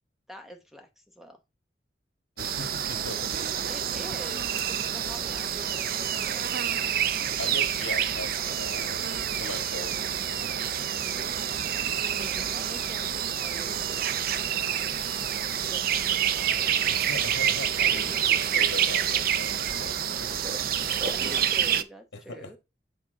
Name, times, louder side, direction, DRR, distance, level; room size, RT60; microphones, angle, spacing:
voice 1, 0.3-1.4 3.7-6.4 12.0-15.0 15.6-17.0 17.9-18.3 21.0-22.6, equal, ahead, 0.8 m, -46 dB
voice 2, 2.4-3.5 7.4-9.1 9.4-11.4 16.9-20.9 22.1-22.6, left 3 dB, 80° left, 1.4 m, -40 dB
sound 1, 2.4-21.8, right 9 dB, 50° right, 0.4 m, -28 dB
Mechanisms, 2.9-21.4, right 1 dB, 35° right, 0.8 m, -46 dB
8.7 x 3.6 x 3.8 m
head